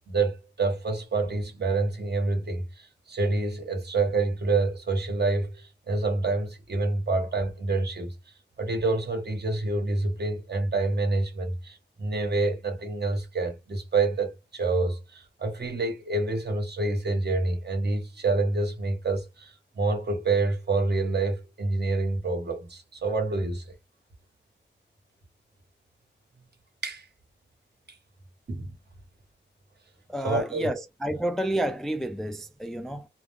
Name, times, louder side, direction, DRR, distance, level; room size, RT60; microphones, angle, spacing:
voice 1, 0.1-8.1 8.6-23.6 26.8-27.1 28.5-28.7 30.2-30.7, right 3 dB, 55° right, 1.1 m, -27 dB
voice 2, 30.1-33.1, right 1 dB, ahead, 0.3 m, -30 dB
2.4 x 2.1 x 3.3 m
wide cardioid pair, 90°, 20 cm